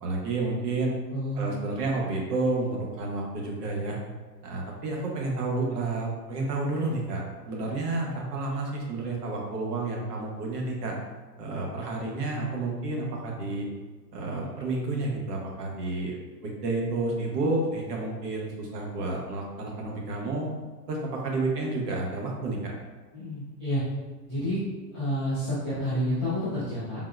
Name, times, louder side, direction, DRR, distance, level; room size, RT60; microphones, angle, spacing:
voice 1, 0.0-1.0 1.3-4.0 4.4-10.9 11.4-13.7 14.1-20.5 20.9-22.7, right 2 dB, 70° right, -1 dB, 0.9 m, -30 dB
voice 2, 1.1-1.5 23.1-23.8 24.2-24.6 24.9-27.0, equal, 20° right, -15 dB, 0.3 m, -29 dB
3.6 x 2.1 x 2.3 m, 1.3 s
hypercardioid pair, 155°, 50 cm